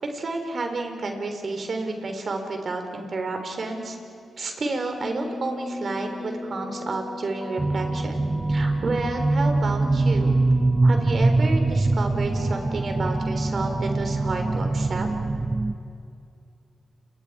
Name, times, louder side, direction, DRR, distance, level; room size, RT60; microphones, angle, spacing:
voice 1, 0.0-4.0 4.4-10.4 10.8-15.1, right 3 dB, 55° right, 5 dB, 3.5 m, -30 dB
sound 1, 5.0-14.6, left 2 dB, 25° left, 7.2 m, -37 dB
sound 2, 7.6-15.7, right 2 dB, 30° right, 0.8 m, -23 dB
29.0 x 23.5 x 4.8 m, 2.4 s
supercardioid pair, 50°, 0 cm